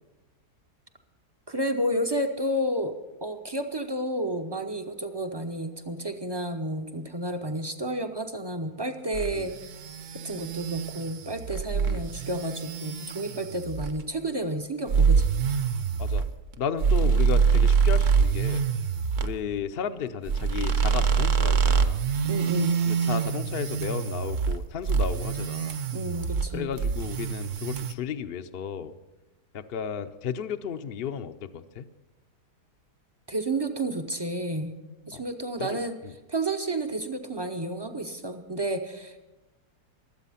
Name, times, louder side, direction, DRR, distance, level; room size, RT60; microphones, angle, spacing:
voice 1, 1.5-2.9 3.2-9.5 10.2-15.3 22.2-22.8 25.9-26.7 33.3-34.8 35.1-36.0 36.3-39.2, right 1 dB, 45° right, 6 dB, 0.3 m, -31 dB
sound 1, 9.1-14.0 14.9-19.3 20.3-24.6 24.9-26.5 26.8-27.9, right 6 dB, 60° right, 1.0 m, -25 dB
voice 2, 16.6-18.7 19.2-22.0 22.9-25.8 26.5-29.0 29.5-31.9 35.1-35.2 35.6-36.1, left 7 dB, 65° left, 8 dB, 0.5 m, -34 dB
23.0 x 8.2 x 5.6 m, 1.1 s
omnidirectional pair, 1.7 m